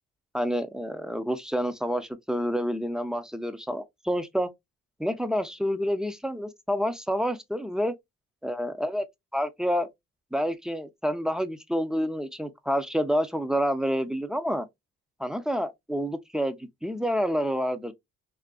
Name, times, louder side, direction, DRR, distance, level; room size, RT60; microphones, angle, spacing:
voice 1, 0.3-4.5 5.0-7.9 8.4-9.0 9.3-9.9 10.3-14.7 15.2-17.9, equal, ahead, 0.3 m, -28 dB
2.5 x 2.4 x 2.2 m
cardioid pair, 90°, 30 cm